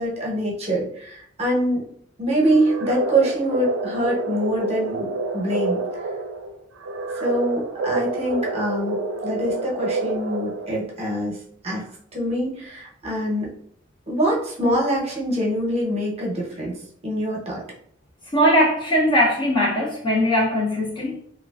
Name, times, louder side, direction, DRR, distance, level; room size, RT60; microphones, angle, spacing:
voice 1, 0.0-1.8 2.2-5.8 7.2-9.0 9.2-11.4 11.6-11.8 12.1-13.5 14.1-17.6, right 1 dB, 30° right, 0.7 m, -24 dB
sound 1, 2.5-10.9, right 3 dB, 80° right, 0.4 m, -28 dB
voice 2, 18.3-21.2, equal, 25° left, 0.4 m, -20 dB
3.0 x 2.4 x 2.3 m
head